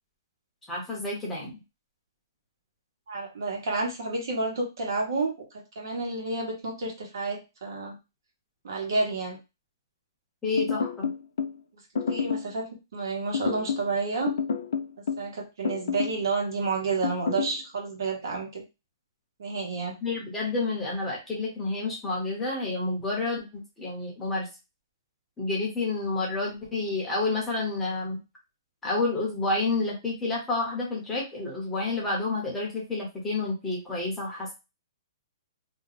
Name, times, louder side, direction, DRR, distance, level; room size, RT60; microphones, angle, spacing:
voice 1, 0.7-1.6 10.4-11.1 20.0-24.5 25.4-28.2 28.8-34.5, left 3 dB, 5° left, -3 dB, 0.8 m, -29 dB
voice 2, 3.1-8.0 8.6-9.4 12.1-14.4 15.2-18.6 19.4-20.0, right 3 dB, 65° right, 1 dB, 1.3 m, -30 dB
sound 1, 10.6-11.6 12.0-12.5 13.3-13.9 14.3-15.3 15.6-16.2 17.0-17.6, left 6 dB, 70° left, 0.5 m, -29 dB
2.7 x 2.2 x 4.0 m, 0.26 s
hypercardioid pair, 170°, 2 cm